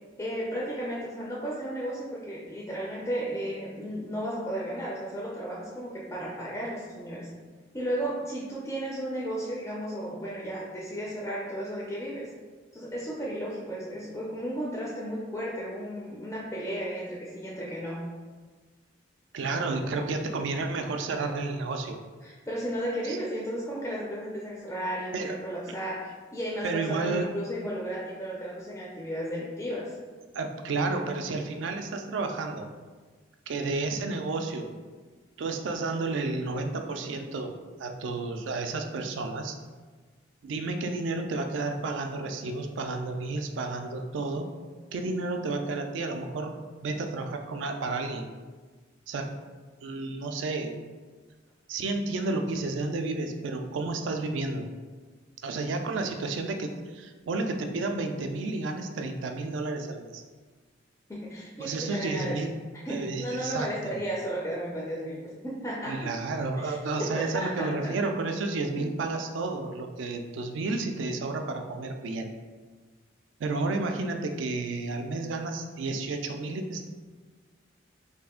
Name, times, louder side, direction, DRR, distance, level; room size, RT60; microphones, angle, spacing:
voice 1, 0.2-7.3 7.7-12.3 12.7-18.1 22.2-29.9 61.1-62.4 62.8-66.1 66.6-67.9 68.8-68.9, equal, 15° left, -5 dB, 0.3 m, -34 dB
voice 2, 19.3-22.0 23.0-23.2 25.1-25.4 26.6-27.3 30.3-32.7 33.5-34.7 35.4-37.5 37.8-39.6 40.4-44.5 44.9-46.6 46.8-48.3 49.1-49.3 49.8-50.7 51.7-54.6 55.4-60.2 61.6-62.5 62.9-64.0 65.9-72.3 73.4-76.8, right 3 dB, 75° right, 5 dB, 0.3 m, -31 dB
2.7 x 2.4 x 3.6 m, 1.4 s
head